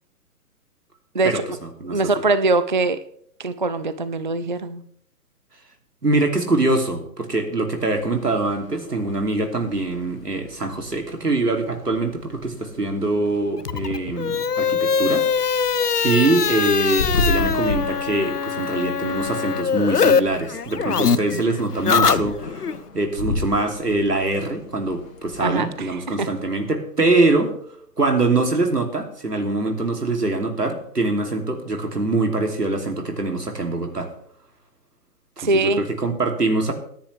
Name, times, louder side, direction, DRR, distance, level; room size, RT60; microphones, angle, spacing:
voice 1, 1.2-2.0 6.0-15.3 16.0-27.5 28.0-34.1 35.5-36.7, right 2 dB, 80° right, 4 dB, 3.0 m, -23 dB
voice 2, 1.8-3.0 3.4-4.8 25.4-26.3 35.4-35.8, right 3 dB, 35° right, 13 dB, 0.4 m, -22 dB
sound 1, 8.0-26.3, left 2 dB, 60° left, 2.2 m, -35 dB
sound 2, 13.6-20.2 20.5-22.7, left 6 dB, 75° left, 0.9 m, -22 dB
18.5 x 10.0 x 3.4 m, 0.65 s
figure-of-eight pair, 130°, 47 cm